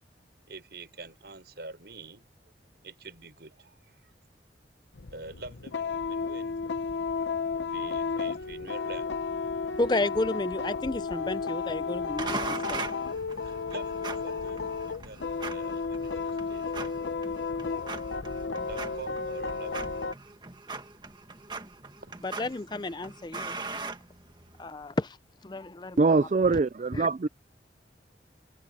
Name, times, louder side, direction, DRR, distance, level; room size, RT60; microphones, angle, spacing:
voice 1, 0.5-2.2 2.8-4.1 5.1-6.6 7.7-9.1 13.4-16.9 18.7-20.0 22.0-22.1 26.9-27.0, right 2 dB, 65° right, 5.8 m, -46 dB
sound 1, 4.9-20.1, left 4 dB, 90° left, 0.8 m, -33 dB
voice 2, 9.8-12.4 12.7-12.9 22.2-23.6 24.6-25.2 25.4-26.3 26.9-27.1, left 2 dB, 25° left, 0.5 m, -31 dB
sound 2, 12.2-24.7, right 3 dB, 25° right, 1.6 m, -40 dB
voice 3, 26.0-27.3, right 3 dB, 40° right, 0.4 m, -23 dB
head